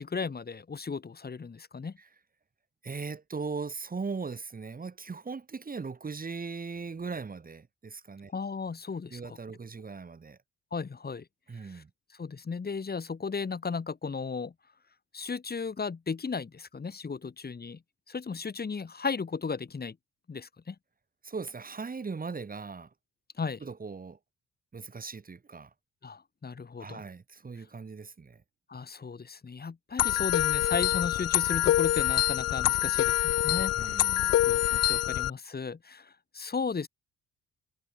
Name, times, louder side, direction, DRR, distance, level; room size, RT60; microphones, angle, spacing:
voice 1, 0.0-1.9 8.3-9.4 10.7-11.3 11.6-11.8 12.1-14.5 15.1-17.8 18.1-20.0 20.3-20.8 23.4-23.6 26.0-27.0 28.7-34.0 34.4-36.9, left 5 dB, 30° left, 2.6 m, -35 dB
voice 2, 2.8-8.3 9.1-10.4 11.5-11.9 21.2-22.9 23.6-24.2 24.7-25.7 26.8-28.4 33.8-34.4, right 4 dB, 30° right, 2.2 m, -39 dB
sound 1, 30.0-35.3, left 13 dB, 55° left, 0.5 m, -26 dB
cardioid pair, 90°, 30 cm